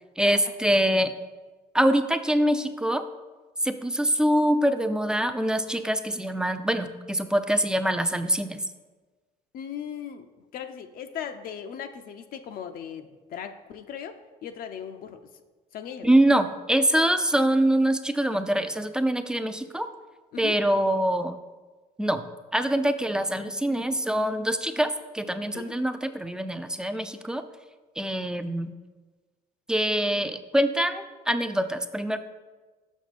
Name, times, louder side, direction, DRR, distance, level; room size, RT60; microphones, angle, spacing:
voice 1, 0.2-1.1 1.7-3.0 3.6-8.6 16.0-19.9 20.4-21.4 22.0-22.2 22.5-27.4 28.0-28.7 29.7-32.2, right 1 dB, 5° right, 9 dB, 0.4 m, -24 dB
voice 2, 9.5-10.3 10.5-15.2 15.7-16.1 17.1-17.2 20.3-20.6 25.5-25.7, left 8 dB, 60° left, 7 dB, 0.5 m, -38 dB
6.2 x 5.9 x 4.1 m, 1.3 s
cardioid pair, 110°, 17 cm